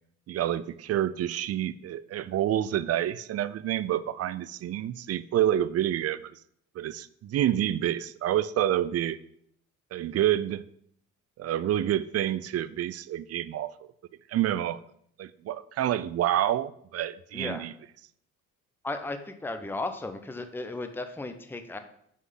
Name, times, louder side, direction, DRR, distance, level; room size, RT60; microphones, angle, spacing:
voice 1, 0.3-6.4 6.8-9.2 9.9-10.6 11.4-13.7 14.3-14.8 15.2-17.7, right 12 dB, 45° right, 16 dB, 0.4 m, -28 dB
voice 2, 17.3-17.7 18.8-21.8, left 2 dB, 5° left, 8 dB, 0.7 m, -35 dB
6.2 x 3.7 x 5.6 m, 0.69 s
supercardioid pair, 60°, 34 cm